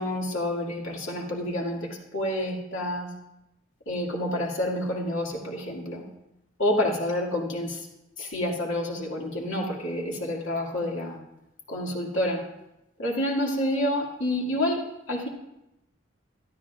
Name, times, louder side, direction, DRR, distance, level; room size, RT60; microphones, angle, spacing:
voice 1, 0.0-3.1 3.9-6.0 6.6-7.9 8.2-11.2 11.7-12.4 13.0-15.3, left 1 dB, 80° left, -2 dB, 2.2 m, -28 dB
23.0 x 13.0 x 2.4 m, 0.89 s
head